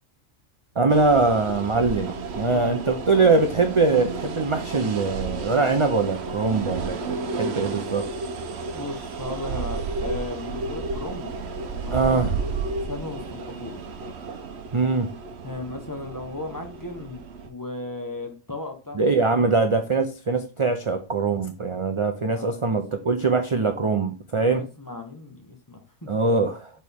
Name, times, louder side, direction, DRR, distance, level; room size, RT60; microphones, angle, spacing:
voice 1, 0.8-8.1 11.9-12.3 14.7-15.1 18.9-24.6 26.1-26.7, right 3 dB, 40° right, 6 dB, 0.4 m, -22 dB
sound 1, 0.9-17.5, right 4 dB, 55° right, 1.0 m, -32 dB
voice 2, 2.5-3.4 8.7-11.3 11.7-12.5 12.9-13.8 15.4-19.0 19.3-19.5 22.3-22.8 24.4-26.1, left 2 dB, 15° left, 4 dB, 1.0 m, -36 dB
6.5 x 4.2 x 3.5 m, 0.33 s
omnidirectional pair, 1.4 m